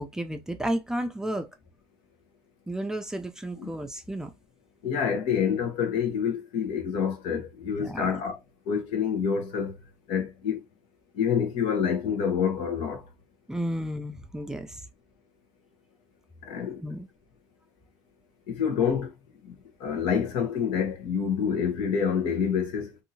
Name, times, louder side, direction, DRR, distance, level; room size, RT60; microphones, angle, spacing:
voice 1, 0.0-1.5 2.7-4.3 7.8-8.2 13.5-14.8 16.8-17.1, right 1 dB, 5° right, 0.4 m, -32 dB
voice 2, 4.8-8.4 8.7-9.8 10.1-10.6 11.1-13.0 16.4-16.8 18.5-19.1 19.4-23.0, left 7 dB, 90° left, 1.1 m, -27 dB
2.8 x 2.7 x 2.7 m
cardioid pair, 125°, 8 cm